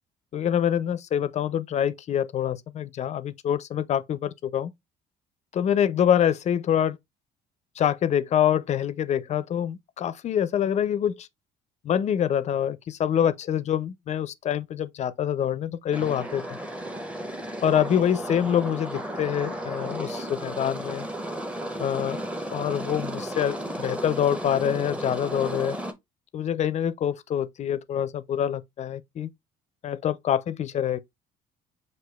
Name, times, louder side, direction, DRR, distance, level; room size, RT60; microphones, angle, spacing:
voice 1, 0.3-4.7 5.5-7.0 7.8-11.3 11.8-16.4 17.6-21.1 21.8-22.2 22.5-25.8 26.3-29.3 29.8-31.0, left 9 dB, 45° left, 0.4 m, -25 dB
sound 1, 15.9-25.9, right 1 dB, 5° right, 0.6 m, -34 dB
6.1 x 2.6 x 2.2 m
cardioid pair, 110°, 17 cm